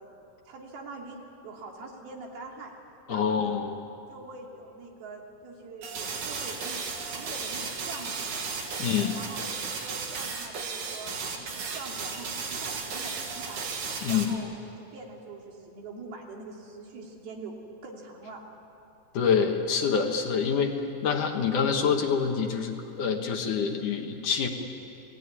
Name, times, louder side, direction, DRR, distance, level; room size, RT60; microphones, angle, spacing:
voice 1, 0.0-2.7 3.1-3.6 4.1-8.4 8.9-9.4 9.8-13.6 14.1-14.5 14.8-17.5 17.8-18.4, right 3 dB, 75° right, 0 dB, 4.7 m, -44 dB
voice 2, 3.1-3.8 8.8-9.1 14.0-14.3 19.1-20.7 21.0-24.5, left 6 dB, 60° left, 3 dB, 2.8 m, -26 dB
sound 1, 5.8-14.3, right 5 dB, 55° right, 3.3 m, -35 dB
29.5 x 19.5 x 9.9 m, 2.8 s
omnidirectional pair, 4.4 m